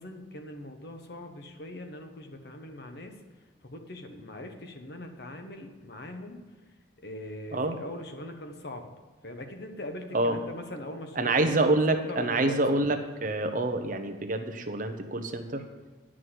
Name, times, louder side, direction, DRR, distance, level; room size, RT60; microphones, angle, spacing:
voice 1, 0.0-3.2 3.6-6.4 7.0-8.8 9.2-11.3 11.7-12.8, left 1 dB, 60° left, 5 dB, 1.1 m, -41 dB
voice 2, 11.2-15.6, right 2 dB, 45° right, 7 dB, 0.9 m, -27 dB
9.8 x 6.3 x 7.9 m, 1.2 s
head